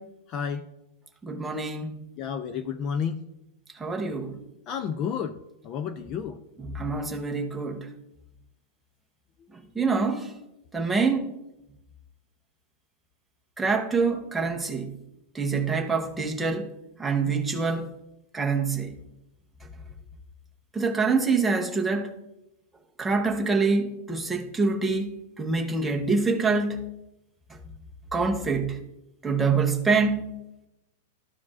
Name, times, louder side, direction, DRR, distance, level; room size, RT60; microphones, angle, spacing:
voice 1, 0.3-0.6 2.2-3.2 4.7-5.4 5.6-6.4, left 7 dB, 30° left, 0.4 m, -31 dB
voice 2, 1.2-1.9 3.7-4.4 6.7-7.9 9.5-10.3 10.7-11.3 13.6-14.9 15.3-16.7 17.0-18.0 18.3-19.0 20.7-22.2 23.0-26.8 28.1-28.8 29.2-30.3, right 4 dB, 5° right, 0.8 m, -26 dB
13.0 x 4.6 x 2.4 m
supercardioid pair, 170°, 0 cm